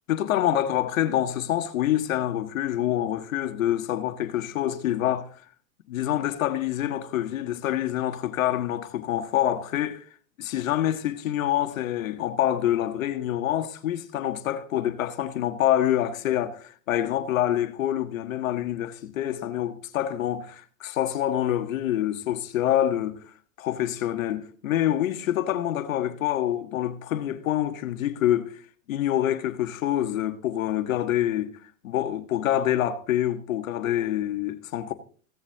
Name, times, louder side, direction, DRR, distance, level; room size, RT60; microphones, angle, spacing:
voice 1, 0.1-5.3 5.9-10.0 10.4-23.2 23.6-28.5 28.9-31.6 31.8-34.9, left 12 dB, 85° left, 1.5 m, -26 dB
16.5 x 7.5 x 3.5 m
supercardioid pair, 120°, 39 cm